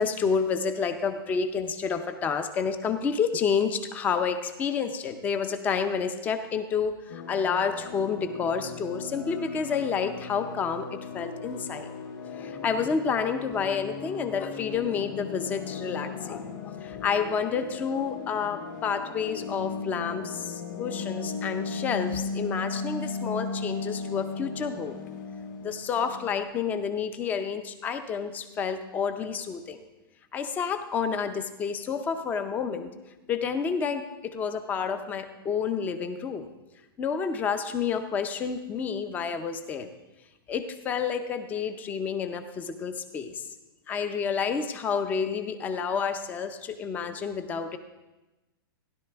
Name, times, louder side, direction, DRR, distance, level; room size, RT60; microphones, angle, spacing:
voice 1, 0.0-11.9 12.3-16.5 16.8-24.9 25.6-29.8 30.3-32.9 33.3-36.5 37.0-39.9 40.5-43.5 43.9-47.8, left 6 dB, 15° left, 9 dB, 0.5 m, -29 dB
sound 1, 7.1-26.4, left 4 dB, 50° left, 1.6 m, -37 dB
16.0 x 11.0 x 3.5 m, 1.1 s
hypercardioid pair, 160°, 12 cm